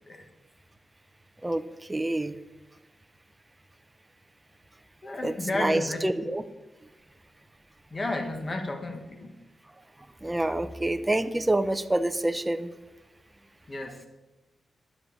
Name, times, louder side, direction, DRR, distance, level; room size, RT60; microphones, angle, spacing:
voice 1, 1.9-2.3 5.2-6.4 10.2-12.7, right 1 dB, 10° right, 9 dB, 0.6 m, -27 dB
voice 2, 5.0-6.1 7.9-9.3 13.7-14.0, left 2 dB, 30° left, 4 dB, 1.6 m, -32 dB
11.0 x 7.7 x 7.2 m, 1.1 s
wide cardioid pair, 140°, 0 cm